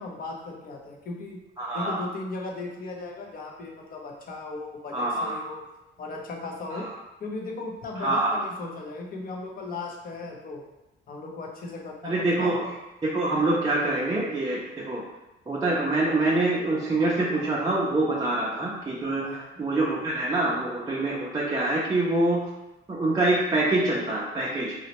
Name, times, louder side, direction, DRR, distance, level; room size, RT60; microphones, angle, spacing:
voice 1, 0.0-1.4 1.7-5.6 6.0-6.9 7.2-10.6 11.1-12.6 19.2-19.6, left 3 dB, 45° left, 0 dB, 0.6 m, -37 dB
voice 2, 1.6-2.0 4.9-5.4 6.7-6.8 8.0-8.4 12.0-12.7 13.0-15.0 15.5-19.2 19.6-22.4 22.9-24.8, right 2 dB, 20° right, -5 dB, 0.4 m, -25 dB
3.9 x 2.1 x 2.9 m, 0.98 s
cardioid pair, 135°, 20 cm